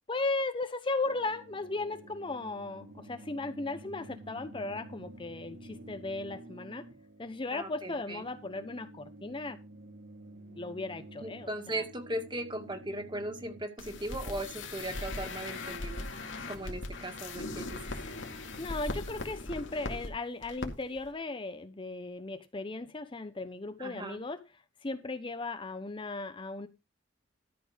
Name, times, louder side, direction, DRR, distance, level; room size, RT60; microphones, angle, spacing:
voice 1, 0.1-6.8 7.2-9.6 10.5-11.8 18.3-24.4 24.8-26.7, left 3 dB, 25° left, 0.7 m, -36 dB
sound 1, 1.0-13.6, right 1 dB, 80° right, 3.1 m, -50 dB
voice 2, 7.5-8.2 11.2-16.0 16.5-17.8 23.8-24.2, right 1 dB, 25° right, 2.1 m, -38 dB
sound 2, 13.8-20.1 20.4-20.7 21.0-21.1, left 2 dB, 90° left, 2.3 m, -39 dB
13.0 x 5.7 x 5.0 m
head